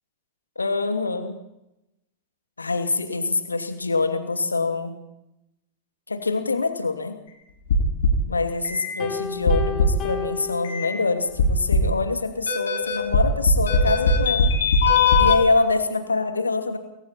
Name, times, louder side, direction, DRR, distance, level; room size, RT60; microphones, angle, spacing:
voice 1, 0.6-1.3 2.6-5.0 6.1-7.2 8.3-14.5 15.2-16.8, left 3 dB, 80° left, 6 dB, 2.7 m, -25 dB
sound 1, 7.7-8.3 8.6-8.9 9.5-10.0 10.6-10.9 11.4-12.0 12.5-15.4, left 3 dB, 65° left, 6.9 m, -19 dB
Piano, 9.0-11.4, left 7 dB, 30° left, 4.7 m, -33 dB
29.0 x 22.0 x 4.4 m, 0.89 s
figure-of-eight pair, 90°, 0 cm